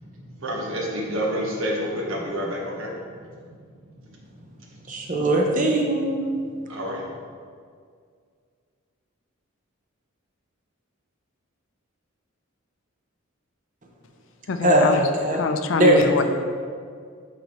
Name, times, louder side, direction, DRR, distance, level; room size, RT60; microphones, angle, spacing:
voice 1, 0.0-2.9 6.7-7.0, equal, 70° right, -2 dB, 1.2 m, -28 dB
voice 2, 4.9-6.2 14.6-15.4 15.7-16.2, right 1 dB, 35° right, 0 dB, 0.7 m, -20 dB
voice 3, 14.5-16.2, left 4 dB, 65° left, 8 dB, 0.4 m, -24 dB
8.9 x 4.1 x 3.0 m, 2.1 s
head